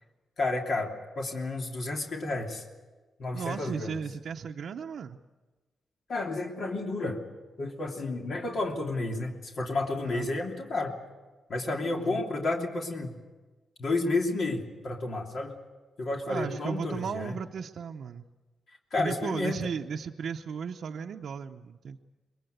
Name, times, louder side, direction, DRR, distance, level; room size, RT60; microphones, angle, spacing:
voice 1, 0.4-2.6 3.2-4.0 6.1-7.2 7.6-10.9 11.5-13.2 13.8-15.5 16.0-17.4 18.9-19.6, left 2 dB, 60° left, 1 dB, 3.0 m, -31 dB
voice 2, 3.3-5.2 10.1-10.3 11.8-12.2 16.3-18.2 19.0-22.0, right 6 dB, 70° right, 2 dB, 0.7 m, -35 dB
23.5 x 21.5 x 8.1 m, 1.3 s
cardioid pair, 105°, 0 cm